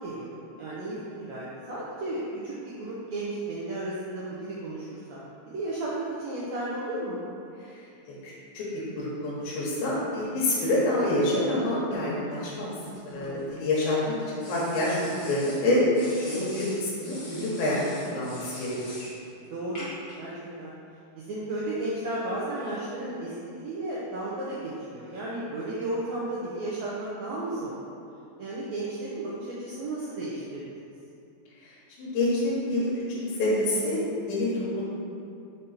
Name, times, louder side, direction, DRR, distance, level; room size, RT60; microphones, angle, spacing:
voice 1, 0.0-7.2 13.1-13.6 19.5-19.9 20.2-20.3 20.6-20.7 21.2-27.8 28.4-30.6, right 2 dB, 75° right, -7 dB, 1.6 m, -34 dB
voice 2, 8.1-12.7 13.1-15.9 16.2-17.8 18.0-18.8 32.0-34.8, left 1 dB, 90° left, -7 dB, 3.0 m, -27 dB
sound 1, 12.8-13.8 14.4-15.6 15.9-19.2 19.8-20.1, left 1 dB, 40° left, 1.4 m, -43 dB
5.6 x 5.2 x 4.3 m, 2.6 s
omnidirectional pair, 4.1 m